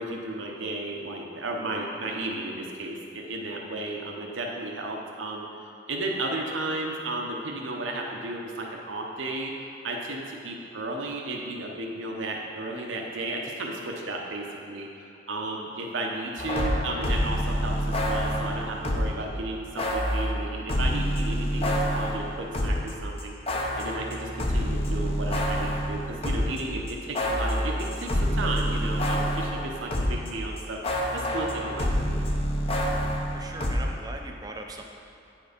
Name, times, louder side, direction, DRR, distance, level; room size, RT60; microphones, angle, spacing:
voice 1, 0.0-5.5 5.9-9.5 9.8-23.3 23.8-30.8 31.1-32.3, right 2 dB, 80° right, 0 dB, 0.8 m, -34 dB
sound 1, 16.4-19.2 19.8-22.9 23.2-30.3 30.6-33.8, equal, 30° left, 0.7 m, -27 dB
voice 2, 33.3-34.8, right 2 dB, 20° right, 3 dB, 0.5 m, -39 dB
9.6 x 4.5 x 5.1 m, 2.6 s
head